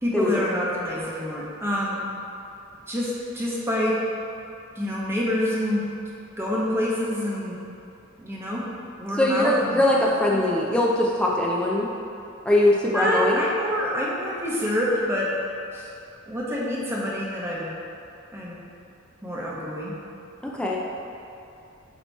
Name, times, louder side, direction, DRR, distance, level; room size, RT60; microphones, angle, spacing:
voice 1, 0.0-2.0 2.9-4.0 4.8-5.8 6.4-7.6 8.2-8.6 9.0-9.8 10.3-10.4 12.9-15.3 15.7-15.9 16.3-17.7 18.3-18.6 19.2-19.9, equal, 10° right, -5 dB, 0.9 m, -27 dB
voice 2, 9.2-11.9 12.5-13.4 20.4-20.8, left 1 dB, 5° left, -4 dB, 0.5 m, -21 dB
8.0 x 2.9 x 4.1 m, 2.7 s
head